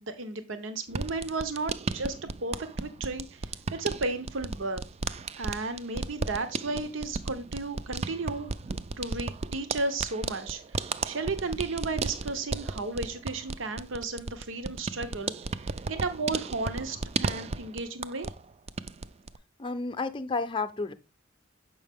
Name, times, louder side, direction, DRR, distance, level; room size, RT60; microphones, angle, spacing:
voice 1, 0.0-4.8 5.4-8.5 9.0-15.3 15.9-18.3, right 3 dB, 80° right, 10 dB, 0.8 m, -34 dB
sound 1, 0.9-18.4 18.7-19.4, right 4 dB, 30° right, 0.3 m, -35 dB
voice 2, 19.6-20.9, left 3 dB, 25° left, 9 dB, 0.5 m, -31 dB
7.3 x 5.5 x 3.5 m, 0.29 s
head